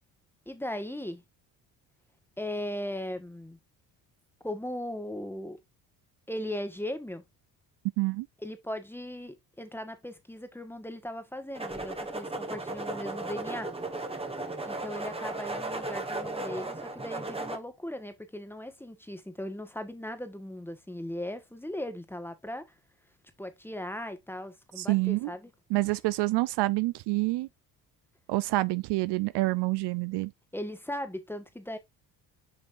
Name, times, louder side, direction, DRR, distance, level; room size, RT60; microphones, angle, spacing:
voice 1, 0.4-1.2 2.4-3.6 4.4-5.6 6.3-7.2 8.4-13.7 14.6-22.7 23.4-25.5 30.5-31.8, left 1 dB, 5° left, 1.5 m, -38 dB
voice 2, 8.0-8.3 24.8-25.3 25.7-27.5 28.3-30.3, right 20 dB, 70° right, 0.5 m, -27 dB
sound 1, 11.5-17.6, right 2 dB, 15° right, 1.3 m, -35 dB
7.6 x 5.1 x 2.6 m
supercardioid pair, 75°, 43 cm